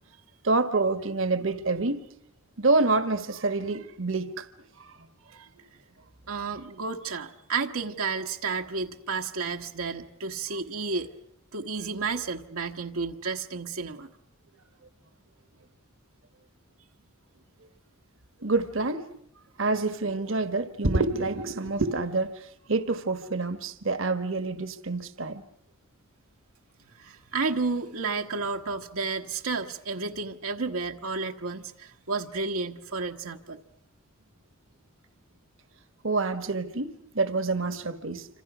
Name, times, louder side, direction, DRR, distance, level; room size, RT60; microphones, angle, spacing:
voice 1, 0.4-2.0 2.6-4.4 18.4-19.0 19.6-25.4 36.0-38.3, right 3 dB, 65° right, 1.4 m, -27 dB
voice 2, 6.3-11.1 11.5-14.1 27.0-33.6, right 4 dB, 80° right, 1.3 m, -31 dB
27.5 x 26.5 x 6.1 m
head